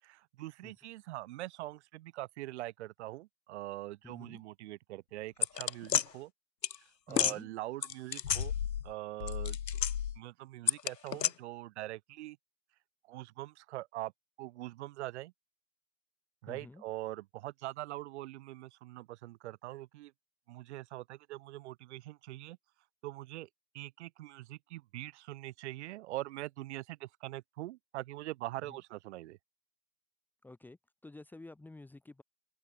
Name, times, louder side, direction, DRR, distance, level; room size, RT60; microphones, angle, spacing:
voice 1, 0.0-6.3 7.1-8.6 8.8-9.6 10.2-12.4 13.1-14.1 14.4-15.3 16.4-20.1 20.5-22.6 23.0-23.5 23.7-29.4, right 17 dB, 45° right, 6.3 m, -43 dB
voice 2, 4.0-4.4 7.1-7.5 16.5-16.8 28.7-28.8 30.4-32.2, left 2 dB, 5° left, 3.0 m, -51 dB
sound 1, 5.4-6.0 6.6-6.8 7.1-7.4 7.8-8.9 9.2-10.2 10.7-11.3, left 9 dB, 80° left, 1.1 m, -31 dB
open air
hypercardioid pair, 135°, 49 cm